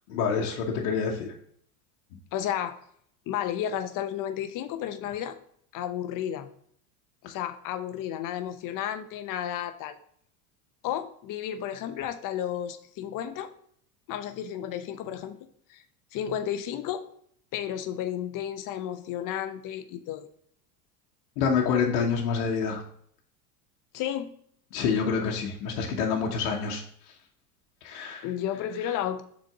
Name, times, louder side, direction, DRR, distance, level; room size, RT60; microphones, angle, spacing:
voice 1, 0.1-1.3 21.4-22.8 24.7-26.8 27.8-28.3, left 6 dB, 70° left, 0 dB, 1.2 m, -27 dB
voice 2, 2.3-2.8 3.3-5.4 5.7-6.5 7.2-10.0 10.8-13.5 14.1-15.4 15.7-15.8 16.1-17.0 17.5-20.3 23.9-24.3 28.2-29.2, left 10 dB, 45° left, 10 dB, 0.8 m, -32 dB
6.3 x 4.2 x 3.6 m, 0.65 s
hypercardioid pair, 100°, 45 cm